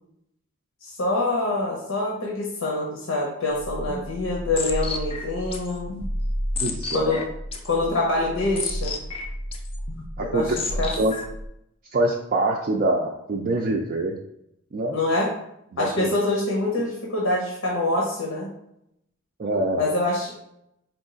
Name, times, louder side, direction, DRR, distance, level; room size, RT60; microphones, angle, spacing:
voice 1, 0.8-5.9 6.9-7.2 7.6-8.9 10.2-10.9 14.9-15.3 15.8-18.5 19.8-20.4, left 2 dB, 90° left, -3 dB, 0.9 m, -25 dB
sound 1, 3.5-11.5, left 1 dB, 25° left, 0.4 m, -31 dB
voice 2, 6.6-7.3 10.2-11.1 11.9-14.2 14.7-15.0 15.7-16.1 19.4-19.8, right 2 dB, 40° right, -1 dB, 0.4 m, -25 dB
4.5 x 2.4 x 3.8 m, 0.80 s
head